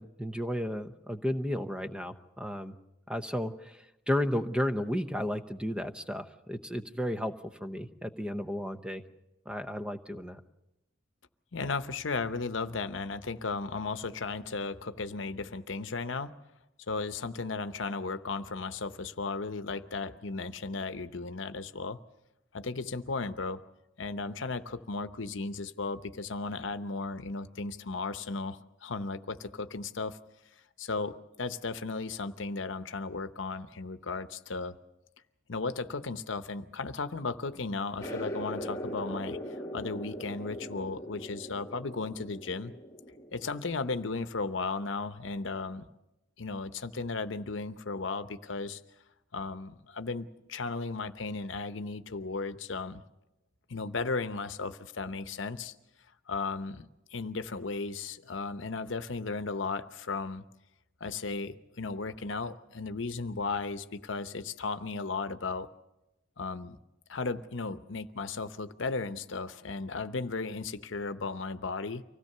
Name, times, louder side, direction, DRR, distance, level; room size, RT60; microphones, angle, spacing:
voice 1, 0.0-2.8 3.1-9.0 9.5-10.4, equal, 5° right, 9 dB, 0.8 m, -33 dB
voice 2, 11.5-16.3 16.9-22.0 22.5-23.6 24.0-30.2 30.8-34.8 35.5-39.4 39.7-42.7 43.3-45.9 46.4-48.8 49.3-53.0 53.7-55.7 56.3-60.4 61.0-65.7 66.4-66.8 67.1-72.0, left 4 dB, 75° left, 11 dB, 0.9 m, -35 dB
sound 1, 38.0-44.2, equal, 15° left, 1.3 m, -40 dB
25.0 x 17.0 x 6.7 m, 0.92 s
head